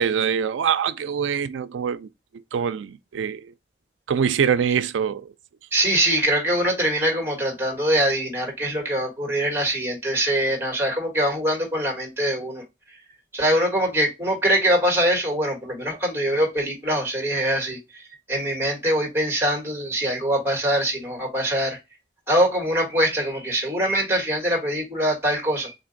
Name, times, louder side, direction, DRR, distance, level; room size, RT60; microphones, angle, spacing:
voice 1, 0.0-2.1 2.5-3.5 4.1-5.3, right 7 dB, 85° right, 0.4 m, -24 dB
voice 2, 5.7-12.6 13.3-18.0 18.3-21.8 22.3-25.7, right 1 dB, 15° right, 1.4 m, -23 dB
3.9 x 2.5 x 3.8 m
head